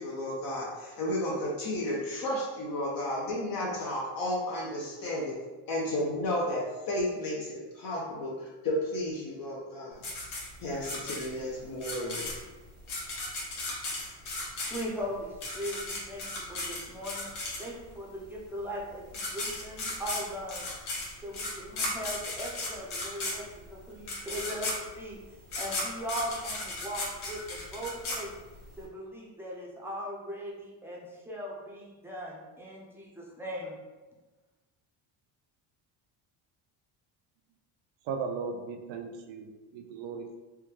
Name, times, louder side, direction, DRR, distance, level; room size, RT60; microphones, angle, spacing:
voice 1, 0.0-5.3 5.7-10.0 10.6-12.3, left 1 dB, 45° left, -3 dB, 0.8 m, -32 dB
sound 1, 10.0-18.0 18.8-18.9 19.1-28.8, left 2 dB, 75° left, 1.3 m, -36 dB
voice 2, 14.7-17.3 17.6-20.7 21.2-25.2 25.6-28.3 28.8-33.7, equal, 5° right, -5 dB, 0.6 m, -39 dB
voice 3, 38.0-40.4, right 5 dB, 65° right, 4 dB, 0.6 m, -37 dB
3.5 x 2.2 x 3.1 m, 1.2 s
cardioid pair, 115°, 49 cm